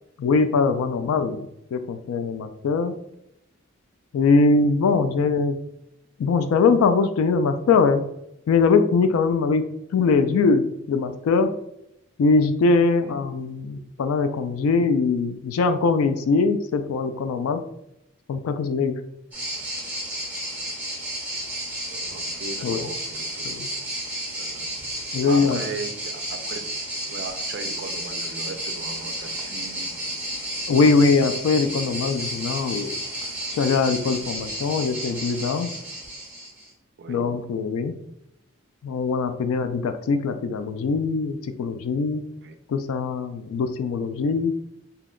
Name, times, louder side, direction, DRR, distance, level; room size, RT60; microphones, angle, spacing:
voice 1, 0.2-1.5 1.7-2.9 4.1-5.6 6.2-8.0 8.5-9.6 9.9-11.5 12.2-17.6 18.3-19.0 22.6-22.8 23.4-23.7 25.1-25.6 30.7-32.9 33.6-35.7 37.1-38.0 38.8-42.2 42.7-44.5, left 4 dB, 80° left, 9 dB, 0.3 m, -22 dB
sound 1, 19.3-36.7, right 1 dB, 10° right, 0.6 m, -32 dB
voice 2, 21.9-23.7 24.4-24.7 25.2-26.6 27.1-29.9 37.0-37.3 42.4-42.6, right 3 dB, 50° right, 7 dB, 0.3 m, -37 dB
2.7 x 2.1 x 3.7 m, 0.81 s
head